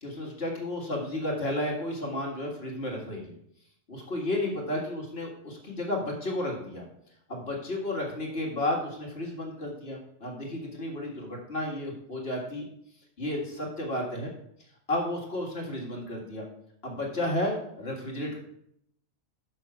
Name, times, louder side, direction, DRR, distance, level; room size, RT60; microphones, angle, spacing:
voice 1, 0.0-3.3 3.9-6.8 7.3-12.6 13.2-14.3 14.9-16.4 16.8-18.4, left 1 dB, 45° left, -1 dB, 1.9 m, -32 dB
6.3 x 6.1 x 5.9 m, 0.72 s
omnidirectional pair, 1.4 m